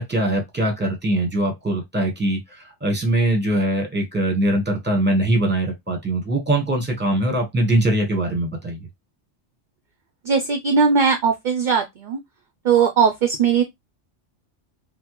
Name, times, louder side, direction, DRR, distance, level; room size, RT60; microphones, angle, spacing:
voice 1, 0.0-8.8, right 1 dB, 10° right, 0.9 m, -22 dB
voice 2, 10.2-12.2 12.6-13.6, right 6 dB, 60° right, 0.5 m, -19 dB
3.6 x 2.0 x 3.0 m
omnidirectional pair, 1.2 m